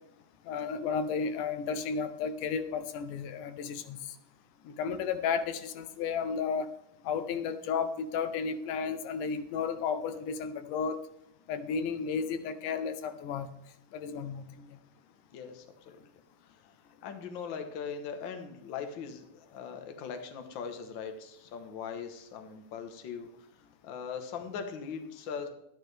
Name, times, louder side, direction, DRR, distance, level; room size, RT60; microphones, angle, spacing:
voice 1, 0.5-4.2 4.6-6.7 7.0-11.0 11.5-13.5 13.9-14.8, left 6 dB, 85° left, 11 dB, 2.3 m, -33 dB
voice 2, 15.3-16.0 17.0-23.3 23.8-25.5, left 6 dB, 55° left, 6 dB, 1.3 m, -40 dB
12.0 x 10.5 x 3.4 m, 0.79 s
omnidirectional pair, 3.6 m